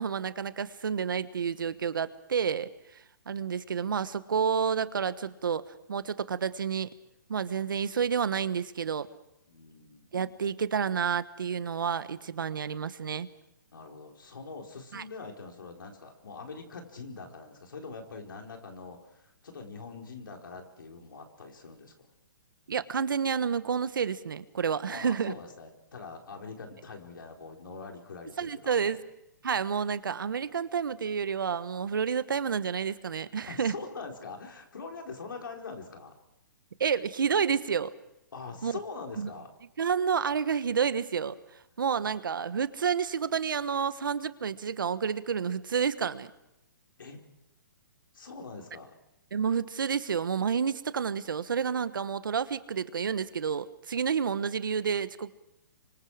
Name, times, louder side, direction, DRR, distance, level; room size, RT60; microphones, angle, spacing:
voice 1, 0.0-2.7 3.3-6.9 7.3-9.1 10.1-13.3 14.9-15.0 22.7-25.3 28.4-29.0 29.4-33.7 36.8-37.9 38.6-38.8 39.2-39.3 39.8-41.3 41.8-46.3 49.3-55.3, right 6 dB, 80° right, 13 dB, 1.3 m, -29 dB
voice 2, 9.5-10.1 13.7-22.1 24.9-28.9 33.5-36.1 38.3-39.5 47.0-47.2 48.1-48.9, left 4 dB, 85° left, 1 dB, 4.8 m, -43 dB
27.0 x 24.5 x 5.0 m, 0.84 s
hypercardioid pair, 145°, 11 cm